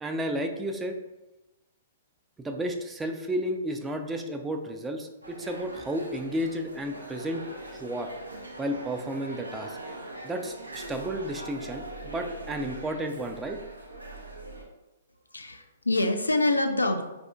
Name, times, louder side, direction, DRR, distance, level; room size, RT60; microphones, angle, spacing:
voice 1, 0.0-1.0 2.4-7.4 7.7-8.1 8.6-9.8 10.2-13.6, right 1 dB, 10° right, 5 dB, 0.3 m, -32 dB
sound 1, 5.2-14.6, right 2 dB, 85° right, 0.5 m, -41 dB
voice 2, 15.3-17.0, left 2 dB, 85° left, 6 dB, 0.3 m, -25 dB
4.1 x 2.5 x 2.3 m, 1.0 s
figure-of-eight pair, 115°, 0 cm